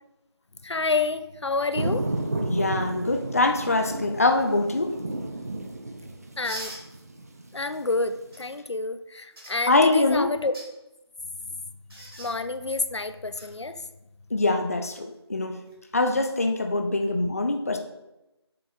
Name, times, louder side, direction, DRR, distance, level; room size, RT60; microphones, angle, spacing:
voice 1, 0.6-2.1 6.4-6.7 7.5-10.6 12.2-13.8, left 3 dB, 80° left, 11 dB, 0.6 m, -29 dB
sound 1, 1.7-8.4, right 2 dB, 35° right, 0.6 m, -32 dB
voice 2, 2.5-4.9 9.7-10.3 14.3-15.6 15.9-17.8, left 2 dB, 35° left, 5 dB, 0.5 m, -23 dB
sound 2, 6.4-6.8 8.3-8.4 9.4-9.5 10.4-10.7 11.9-12.3 13.4-13.5 15.5-15.7, right 1 dB, 60° right, 2.6 m, -39 dB
7.5 x 6.0 x 3.5 m, 0.94 s
figure-of-eight pair, 170°, 14 cm